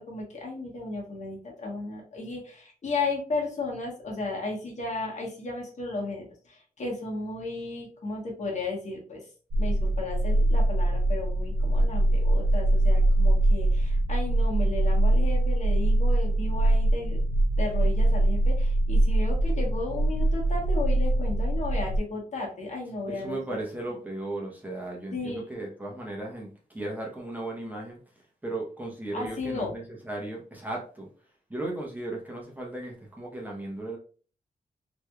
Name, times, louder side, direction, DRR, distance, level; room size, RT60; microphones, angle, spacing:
voice 1, 0.0-9.2 9.6-17.2 17.6-23.6 25.1-25.6 29.1-29.7, left 3 dB, 45° left, -1 dB, 1.2 m, -34 dB
sound 1, 9.5-22.0, right 1 dB, 90° right, 0.6 m, -23 dB
voice 2, 23.1-28.0 28.4-31.1 31.5-34.0, right 2 dB, 10° right, -2 dB, 0.8 m, -36 dB
3.3 x 3.0 x 2.3 m, 0.40 s
wide cardioid pair, 130°, 16 cm